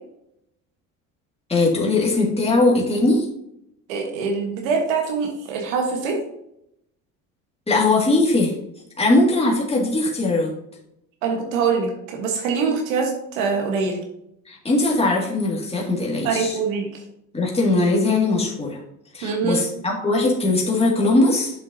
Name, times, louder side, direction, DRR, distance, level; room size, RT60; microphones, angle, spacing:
voice 1, 1.5-3.3 7.7-8.5 9.0-10.5 14.5-16.6 17.3-18.8 19.1-21.5, left 2 dB, 15° left, -3 dB, 2.1 m, -20 dB
voice 2, 3.9-6.2 11.2-14.0 16.2-16.9 19.2-19.6, right 5 dB, 85° right, 1 dB, 1.4 m, -24 dB
7.2 x 6.3 x 2.7 m, 0.78 s
hypercardioid pair, 70°, 40 cm